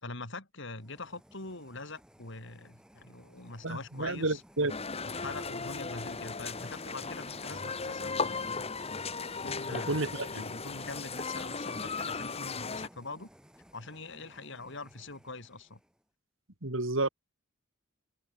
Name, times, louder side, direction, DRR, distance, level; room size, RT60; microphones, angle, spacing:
voice 1, 0.0-4.4 5.0-8.6 9.4-13.3 13.7-15.8, left 3 dB, 65° left, 5.0 m, -44 dB
sound 1, 0.6-16.0, equal, 5° right, 6.5 m, -57 dB
voice 2, 3.6-4.7 9.7-10.4 16.6-17.1, right 2 dB, 70° right, 2.9 m, -31 dB
sound 2, 4.7-12.9, left 4 dB, 30° left, 1.5 m, -36 dB
head